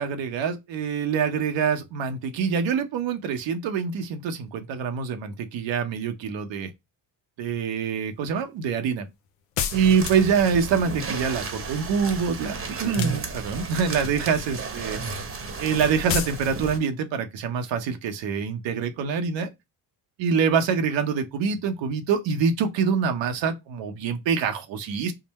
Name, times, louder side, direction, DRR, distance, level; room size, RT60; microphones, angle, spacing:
voice 1, 0.0-6.7 7.4-9.1 9.7-15.0 15.6-19.5 20.2-25.1, right 6 dB, 65° right, 0.8 m, -25 dB
sound 1, 9.6-10.4 12.8-13.7 16.1-16.4, left 8 dB, 90° left, 0.7 m, -29 dB
sound 2, 9.7-16.8, right 4 dB, 25° right, 0.9 m, -33 dB
3.7 x 2.1 x 4.0 m
supercardioid pair, 75°, 48 cm